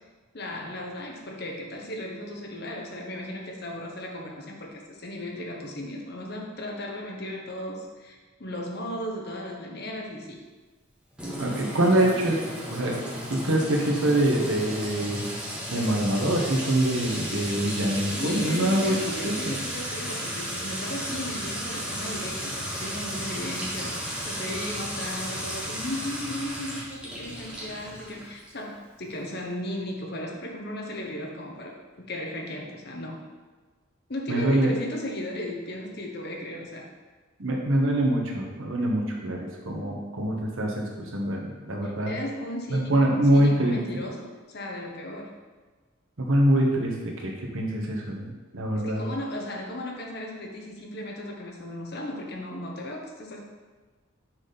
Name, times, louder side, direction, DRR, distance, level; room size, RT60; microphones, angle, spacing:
voice 1, 0.3-10.4 13.4-13.5 18.0-33.2 34.1-36.9 41.8-45.3 48.7-53.4, left 1 dB, 50° left, 0 dB, 1.0 m, -36 dB
Sink (filling or washing) / Trickle dribble / Fill (with liquid), 11.2-28.6, equal, 5° right, 1.3 m, -34 dB
voice 2, 11.3-12.4 12.7-13.0 13.3-15.2 15.7-18.9 19.2-19.5 34.3-34.7 37.4-42.1 42.7-43.8 46.2-48.3 48.5-49.1, right 1 dB, 75° right, -1 dB, 1.2 m, -24 dB
6.1 x 4.2 x 5.1 m, 1.3 s
head